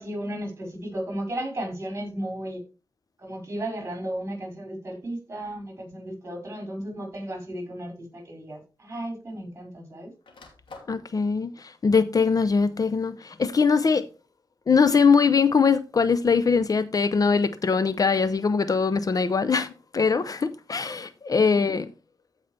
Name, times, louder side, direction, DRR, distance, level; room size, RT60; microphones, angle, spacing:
voice 1, 0.0-2.6 3.2-10.1 21.3-21.7, right 1 dB, 30° right, 5.3 m, -34 dB
sound 1, 5.4-5.7 6.7-6.8 8.2-8.3 8.6-9.7 10.0-11.0, left 3 dB, 85° left, 2.8 m, -49 dB
voice 2, 10.9-14.1 14.7-21.9, left 5 dB, 45° left, 0.6 m, -22 dB
14.5 x 5.4 x 3.3 m
wide cardioid pair, 100°, 8 cm